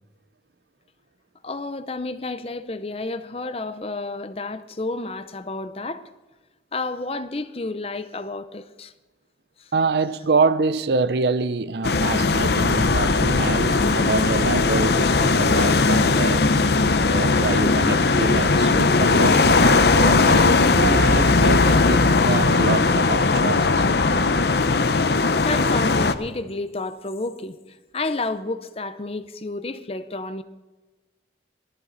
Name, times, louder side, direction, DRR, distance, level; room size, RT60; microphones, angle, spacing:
voice 1, 1.4-6.1 6.7-8.9 9.6-9.7 16.4-16.5 18.7-18.8 21.9-22.0 22.7-22.8 25.3-30.4, left 2 dB, 35° left, 0.7 m, -31 dB
voice 2, 9.7-16.5 17.0-18.7 19.0-23.8, right 4 dB, 65° right, 0.6 m, -26 dB
sound 1, 11.8-26.1, left 3 dB, 65° left, 0.7 m, -18 dB
19.5 x 13.5 x 4.0 m
head